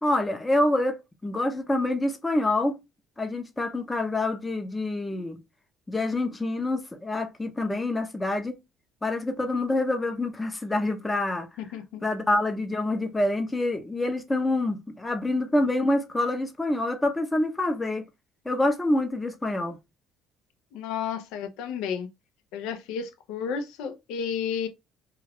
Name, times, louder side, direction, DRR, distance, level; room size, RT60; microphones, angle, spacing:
voice 1, 0.0-2.8 3.2-5.4 5.9-8.5 9.0-11.5 12.0-18.1 18.5-19.8, left 2 dB, 15° left, 0.6 m, -26 dB
voice 2, 11.6-12.0 20.7-22.1 22.5-24.7, left 7 dB, 80° left, 0.4 m, -32 dB
2.3 x 2.2 x 3.3 m
cardioid pair, 100°, 0 cm